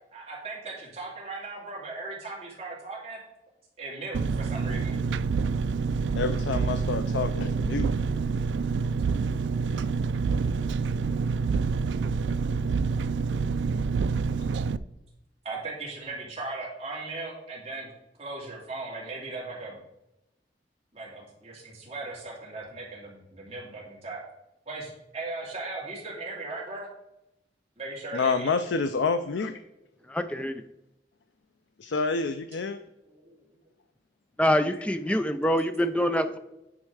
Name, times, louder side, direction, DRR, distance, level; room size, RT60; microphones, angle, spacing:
voice 1, 0.1-3.2 3.8-5.0 15.4-17.9 18.2-19.8 20.9-24.2 24.7-26.9 27.8-28.6 33.1-33.4, right 3 dB, 35° right, 2.7 m, -38 dB
Engine, 4.1-14.8, right 4 dB, 85° right, 0.3 m, -27 dB
voice 2, 6.1-7.9 28.1-29.6 31.8-32.8, left 4 dB, 90° left, 0.5 m, -28 dB
voice 3, 30.1-30.6 34.4-36.4, equal, 5° left, 0.4 m, -25 dB
9.6 x 4.4 x 4.8 m
head